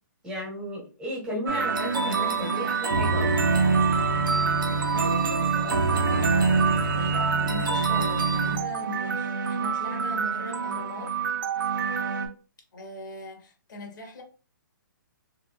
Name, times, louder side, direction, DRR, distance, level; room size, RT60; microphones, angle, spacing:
voice 1, 0.2-3.3, equal, 10° right, 1.4 m, -34 dB
sound 1, 1.5-12.3, right 4 dB, 90° right, 0.9 m, -25 dB
voice 2, 4.9-11.1 12.7-14.2, left 1 dB, 65° left, 1.2 m, -40 dB
3.5 x 3.1 x 2.3 m
hypercardioid pair, 160°, 11 cm